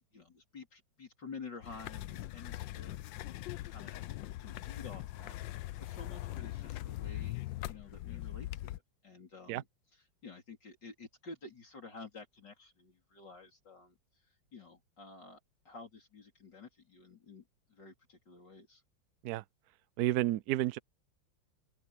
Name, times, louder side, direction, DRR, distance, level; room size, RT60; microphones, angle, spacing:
voice 1, 0.1-8.8 9.0-9.7 9.9-15.4 15.6-17.4 17.7-18.8, left 4 dB, 65° left, 4.6 m, -51 dB
sound 1, 1.6-8.8, left 16 dB, 80° left, 1.3 m, -41 dB
voice 2, 20.0-20.8, right 15 dB, 65° right, 1.0 m, -31 dB
open air
omnidirectional pair, 2.1 m